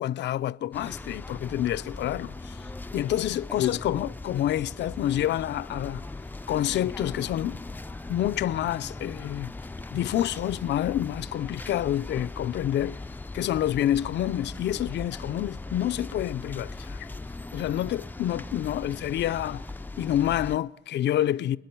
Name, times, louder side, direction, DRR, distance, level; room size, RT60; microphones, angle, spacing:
voice 1, 0.0-2.7 2.9-6.0 6.5-7.7 8.1-9.5 9.9-13.0 13.3-17.1 17.5-19.7 20.0-21.6, left 12 dB, 60° left, 0.5 m, -28 dB
sound 1, 0.7-20.6, left 2 dB, 10° left, 0.4 m, -39 dB
29.0 x 10.5 x 4.5 m
cardioid pair, 90°, 20 cm